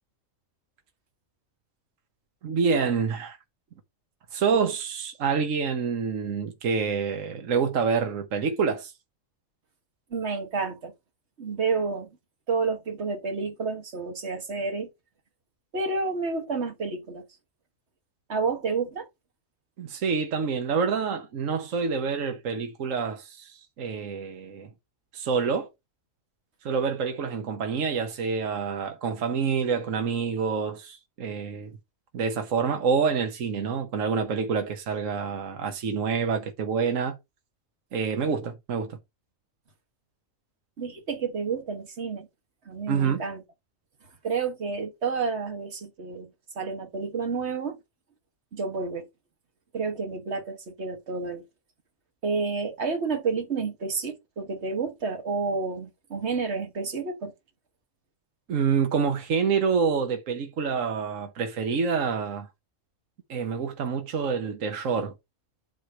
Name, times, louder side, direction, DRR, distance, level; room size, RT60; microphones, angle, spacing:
voice 1, 2.4-3.4 4.3-8.9 19.8-24.7 25.1-25.7 26.6-31.7 32.1-37.2 37.9-39.0 42.9-43.2 58.5-62.5 63.3-65.1, right 5 dB, 75° right, 1.4 m, -27 dB
voice 2, 10.1-10.9 11.4-12.1 12.5-14.9 15.7-17.2 18.3-19.1 40.8-42.3 42.7-43.4 44.2-46.3 46.6-47.8 48.5-49.1 49.7-51.4 52.2-57.3, right 4 dB, 55° right, 1.9 m, -30 dB
9.1 x 3.1 x 6.2 m
omnidirectional pair, 1.4 m